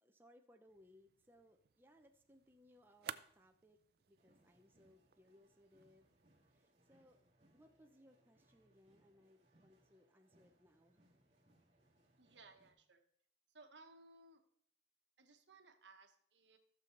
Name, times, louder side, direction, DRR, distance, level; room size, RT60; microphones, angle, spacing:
voice 1, 0.0-3.8 4.0-6.0 6.4-7.2 7.5-11.0, equal, 10° right, 4 dB, 0.7 m, -67 dB
sound 1, 0.7-6.6, right 9 dB, 55° right, 0.4 m, -56 dB
sound 2, 4.2-12.7, right 1 dB, 35° right, 2.0 m, -74 dB
voice 2, 12.2-13.0 13.5-14.4 15.2-16.6, right 3 dB, 70° right, 6 dB, 1.2 m, -62 dB
15.0 x 6.9 x 3.9 m, 0.66 s
head